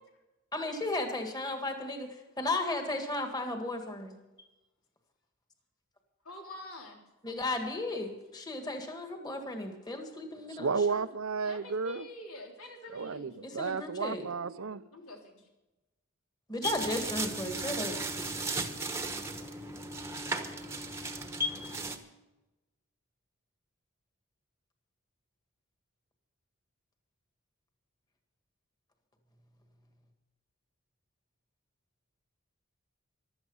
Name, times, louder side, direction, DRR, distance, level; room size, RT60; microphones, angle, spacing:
voice 1, 0.5-2.1 2.4-4.2 7.2-11.0 13.4-14.2 16.5-18.0, left 2 dB, 20° left, 1.9 m, -35 dB
voice 2, 6.3-7.0 11.4-13.3 14.9-15.4, left 1 dB, 75° left, 3.8 m, -46 dB
voice 3, 10.4-12.1 12.9-14.9, right 5 dB, 65° right, 0.6 m, -33 dB
sound 1, 16.6-22.0, right 2 dB, 10° right, 1.1 m, -35 dB
16.0 x 12.0 x 5.6 m
head